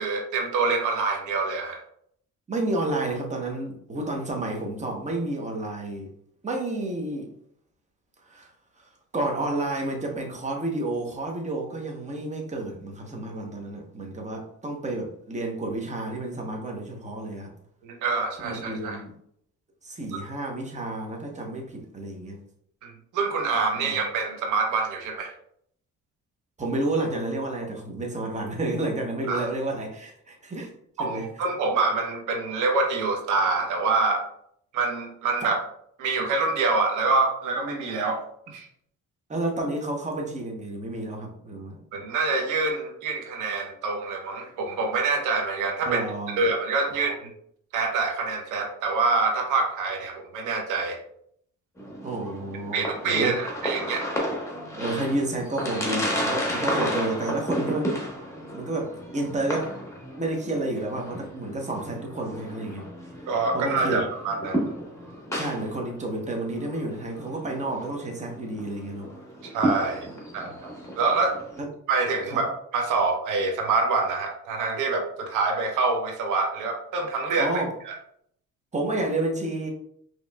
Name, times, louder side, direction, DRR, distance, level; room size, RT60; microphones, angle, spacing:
voice 1, 0.0-1.8 17.8-19.0 22.8-25.3 29.3-29.5 31.0-34.2 34.7-35.6 36.0-38.2 38.5-38.7 41.9-46.0 46.4-47.3 47.7-51.0 52.7-54.0 63.3-64.7 69.5-70.1 70.3-71.3 71.9-77.5 77.9-78.0, right 3 dB, 90° right, 2 dB, 0.9 m, -26 dB
voice 2, 2.5-6.1 6.4-7.3 8.3-8.5 8.8-17.5 18.4-19.1 19.8-22.4 23.8-24.0 26.6-30.7 31.0-31.3 39.3-41.8 45.8-46.4 46.9-47.2 52.0-53.4 54.8-58.0 58.5-59.7 60.2-62.9 63.5-64.0 65.3-69.1 70.1-70.5 71.6-71.7 72.3-72.4 77.3-77.7 78.7-79.7, right 2 dB, 25° right, 1 dB, 0.9 m, -30 dB
sound 1, 51.8-71.6, equal, 10° left, 1.2 m, -33 dB
4.9 x 3.0 x 2.3 m, 0.69 s
cardioid pair, 90°, 30 cm